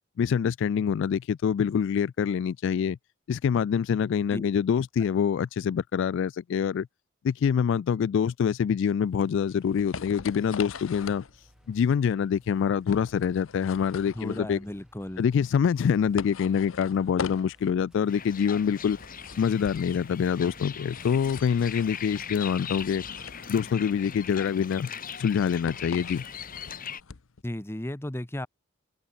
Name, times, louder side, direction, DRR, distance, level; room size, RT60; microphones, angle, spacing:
voice 1, 0.2-3.0 3.3-6.9 7.2-11.2 11.7-14.6 15.2-19.0 19.4-23.0 23.5-24.9 25.2-26.2, left 7 dB, 65° left, 0.3 m, -25 dB
sound 1, 9.1-27.4, left 5 dB, 85° left, 0.8 m, -42 dB
sound 2, 9.2-26.6, equal, 5° right, 4.3 m, -58 dB
voice 2, 14.1-15.3 27.4-28.5, left 1 dB, 10° left, 0.9 m, -35 dB
sound 3, 18.1-27.0, left 7 dB, 45° left, 2.6 m, -40 dB
head